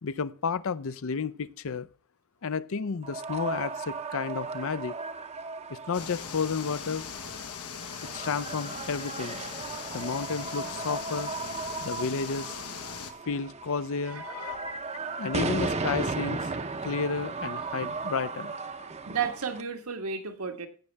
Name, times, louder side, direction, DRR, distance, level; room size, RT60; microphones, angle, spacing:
voice 1, 0.0-1.9 2.4-4.9 5.7-7.1 8.0-9.4 9.9-11.3 11.8-12.6 13.2-14.8 15.2-16.5 16.8-18.5, left 5 dB, 65° left, 0.5 m, -32 dB
sound 1, 3.0-19.6, right 4 dB, 30° right, 0.7 m, -36 dB
sound 2, 5.9-13.1, left 7 dB, 85° left, 1.3 m, -40 dB
voice 2, 14.1-14.7 15.0-15.5 19.1-20.7, right 6 dB, 75° right, 1.5 m, -34 dB
17.0 x 6.5 x 3.4 m
head